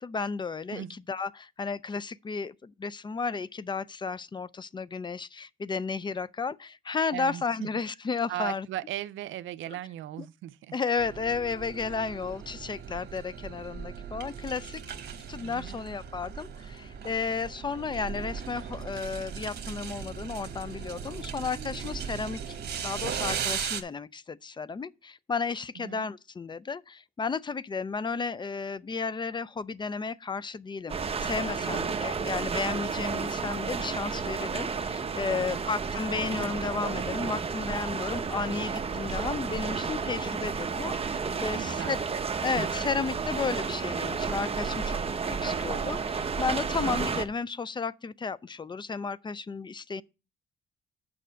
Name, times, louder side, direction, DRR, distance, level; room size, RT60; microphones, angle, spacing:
voice 1, 0.0-8.7 9.7-9.8 10.7-14.8 15.3-42.0 42.4-45.0 45.3-50.0, left 5 dB, 25° left, 0.4 m, -33 dB
voice 2, 7.1-7.7 8.3-10.8 15.4-15.8 25.8-26.1 31.6-32.0 35.2-35.7 41.3-42.0, right 13 dB, 80° right, 0.5 m, -38 dB
sound 1, 11.0-23.8, right 7 dB, 55° right, 1.3 m, -38 dB
sound 2, 30.9-47.2, right 5 dB, 30° right, 0.8 m, -31 dB
6.7 x 5.5 x 6.2 m
cardioid pair, 90°, 20 cm